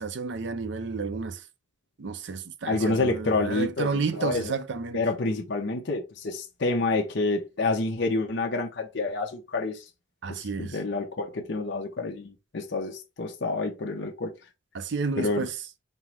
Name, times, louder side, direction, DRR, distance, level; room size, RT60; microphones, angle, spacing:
voice 1, 0.0-1.4 2.0-5.0 10.2-10.8 14.7-15.6, right 4 dB, 60° right, 0.5 m, -31 dB
voice 2, 2.7-4.5 4.9-9.8 10.3-14.3 15.1-15.5, left 3 dB, 60° left, 0.7 m, -28 dB
5.4 x 2.1 x 4.5 m
head